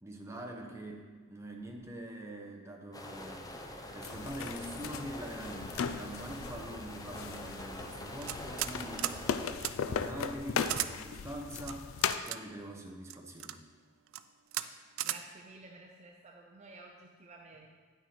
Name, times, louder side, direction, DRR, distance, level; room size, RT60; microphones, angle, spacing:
voice 1, 0.0-3.5 3.9-9.1 9.8-11.9 12.3-13.6, right 1 dB, 15° right, 1 dB, 0.9 m, -44 dB
sound 1, 2.9-9.5, left 1 dB, 20° left, 0.6 m, -45 dB
sound 2, 4.0-12.2, left 6 dB, 85° left, 0.4 m, -38 dB
sound 3, 8.2-8.7 9.0-9.2 9.6-9.7 10.6-10.9 11.7-12.4 13.1-13.6 14.1-14.2 14.5-14.7 15.0-15.2, right 13 dB, 90° right, 0.4 m, -35 dB
voice 2, 15.0-17.7, right 3 dB, 35° right, 1 dB, 0.6 m, -52 dB
9.4 x 6.1 x 4.3 m, 1.5 s
head